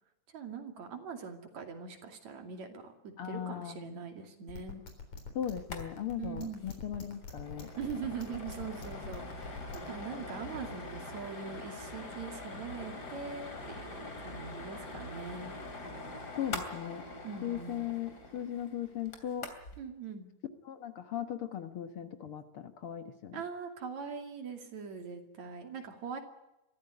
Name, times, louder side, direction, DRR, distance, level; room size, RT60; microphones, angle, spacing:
voice 1, 0.3-4.8 6.2-6.6 7.8-15.5 17.2-17.8 19.8-20.3 23.3-26.2, right 6 dB, 70° right, 5 dB, 3.9 m, -42 dB
voice 2, 3.2-4.0 5.4-7.7 16.4-17.0 17.4-19.5 20.7-23.4, left 10 dB, 55° left, 8 dB, 1.9 m, -38 dB
sound 1, 4.5-9.9, left 5 dB, 75° left, 5.2 m, -44 dB
sound 2, 5.6-5.9 6.1-6.2 6.5-6.7 7.1-19.8, left 2 dB, 35° left, 3.2 m, -43 dB
23.0 x 15.0 x 9.8 m, 0.90 s
omnidirectional pair, 3.3 m